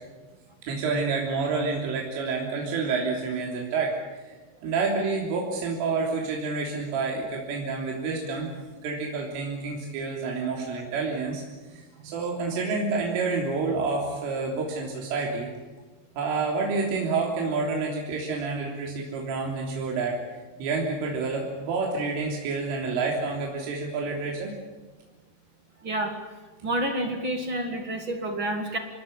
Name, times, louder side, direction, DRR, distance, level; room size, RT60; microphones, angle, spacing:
voice 1, 0.7-3.9 4.6-8.5 8.8-11.4 12.0-15.5 16.2-20.2 20.6-24.5, right 4 dB, 85° right, -1 dB, 5.9 m, -28 dB
voice 2, 25.8-26.1 26.6-28.8, right 1 dB, 45° right, 4 dB, 1.6 m, -29 dB
26.5 x 21.0 x 9.0 m, 1.2 s
omnidirectional pair, 5.6 m